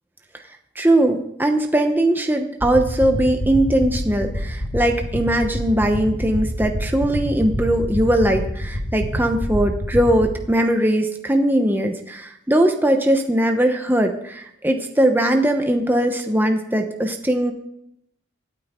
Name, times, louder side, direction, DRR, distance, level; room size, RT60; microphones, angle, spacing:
voice 1, 0.8-17.5, right 1 dB, 10° right, 4 dB, 0.9 m, -20 dB
sound 1, 2.6-10.3, left 1 dB, 80° left, 4.8 m, -25 dB
26.0 x 9.0 x 3.7 m, 0.79 s
head